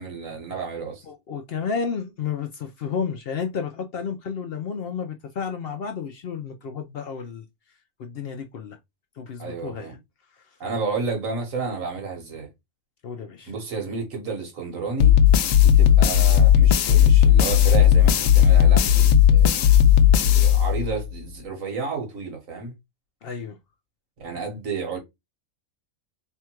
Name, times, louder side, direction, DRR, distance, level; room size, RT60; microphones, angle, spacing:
voice 1, 0.0-1.0 9.4-10.0 10.6-12.5 13.5-15.2 15.6-19.5 20.3-22.7 24.2-25.0, right 4 dB, 80° right, 1.7 m, -31 dB
voice 2, 1.1-7.4 8.0-8.8 9.2-9.9 13.0-13.5 23.2-23.6, left 6 dB, 60° left, 0.7 m, -31 dB
sound 1, 15.0-21.1, left 10 dB, 85° left, 1.0 m, -15 dB
3.5 x 2.3 x 4.4 m
omnidirectional pair, 1.4 m